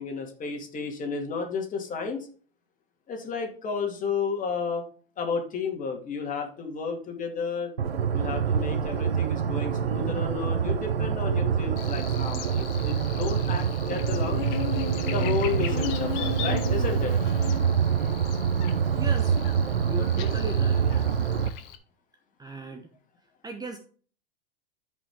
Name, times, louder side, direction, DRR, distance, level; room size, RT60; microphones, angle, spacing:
voice 1, 0.0-2.3 3.1-4.8 5.2-7.7 8.1-14.4 15.1-17.1, left 5 dB, 25° left, 2 dB, 2.4 m, -32 dB
sound 1, 7.8-21.5, right 7 dB, 90° right, 0.9 m, -26 dB
Buzz, 11.8-21.8, left 8 dB, 50° left, 1.5 m, -37 dB
voice 2, 18.9-19.4 19.9-20.9 22.4-22.9 23.4-23.8, right 2 dB, 15° right, 6 dB, 0.9 m, -37 dB
13.5 x 5.4 x 3.7 m, 0.43 s
hypercardioid pair, 105°, 30 cm